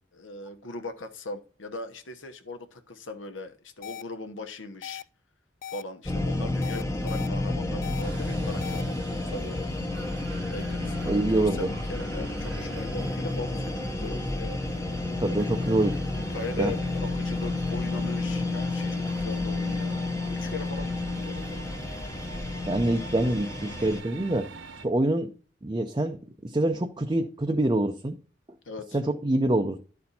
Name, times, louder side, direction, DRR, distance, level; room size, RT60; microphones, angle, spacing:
voice 1, 0.1-5.0 5.7-10.1 10.5-14.6 16.3-21.6 28.6-29.0, left 2 dB, 85° left, 1.1 m, -39 dB
sound 1, 3.8-4.0 4.8-5.0 5.6-5.8 6.6-7.3 7.8-8.0 8.6-8.8, left 10 dB, 45° left, 0.3 m, -39 dB
sound 2, 6.1-24.0, left 2 dB, 15° left, 0.7 m, -31 dB
sound 3, 8.0-24.9, right 3 dB, 80° right, 0.9 m, -45 dB
voice 2, 11.1-11.7 15.2-16.0 16.6-16.7 22.7-24.5 24.8-25.3 25.6-28.2 28.9-29.8, right 1 dB, 20° right, 0.5 m, -25 dB
11.5 x 4.3 x 4.2 m
head